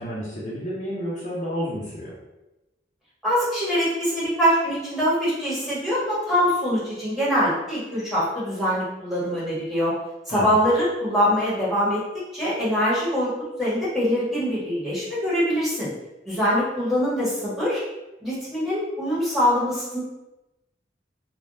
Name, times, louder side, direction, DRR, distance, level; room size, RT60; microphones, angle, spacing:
voice 1, 0.0-2.1 10.3-10.6, equal, 40° left, -7 dB, 0.6 m, -30 dB
voice 2, 3.2-9.9 10.3-13.3 13.6-15.9 16.2-17.8 18.2-20.0, equal, ahead, -9 dB, 1.2 m, -23 dB
3.3 x 2.2 x 2.6 m, 0.99 s
head